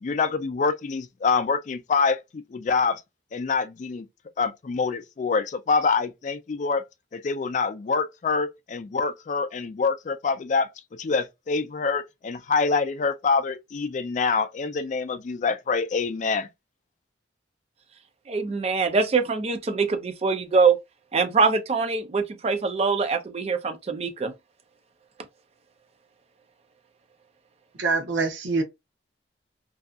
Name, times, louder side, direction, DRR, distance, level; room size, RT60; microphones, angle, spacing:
voice 1, 0.0-3.0 3.3-4.1 4.4-6.8 7.1-10.7 11.0-16.5, left 4 dB, 40° left, 0.3 m, -26 dB
voice 2, 18.3-20.8 21.1-24.3, right 4 dB, 35° right, 0.4 m, -23 dB
voice 3, 27.8-28.6, right 3 dB, 85° right, 0.7 m, -24 dB
2.6 x 2.4 x 2.3 m
head